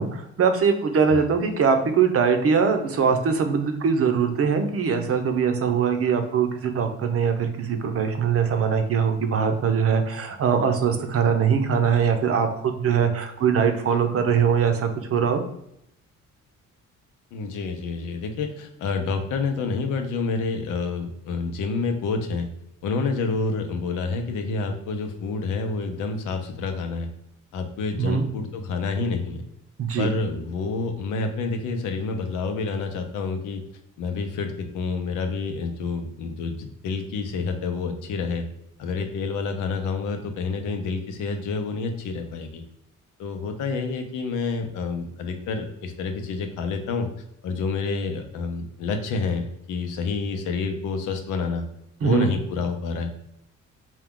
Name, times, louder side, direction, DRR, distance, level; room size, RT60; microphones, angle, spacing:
voice 1, 0.0-15.4 28.0-28.3 29.8-30.1 52.0-52.3, right 6 dB, 50° right, 6 dB, 0.7 m, -22 dB
voice 2, 17.3-22.5 22.8-27.1 27.5-29.4 30.0-33.6 34.0-38.5 38.8-42.6 43.2-47.1 47.4-51.6 52.0-53.1, left 4 dB, 90° left, 6 dB, 0.7 m, -28 dB
4.6 x 2.3 x 3.6 m, 0.79 s
cardioid pair, 90°, 30 cm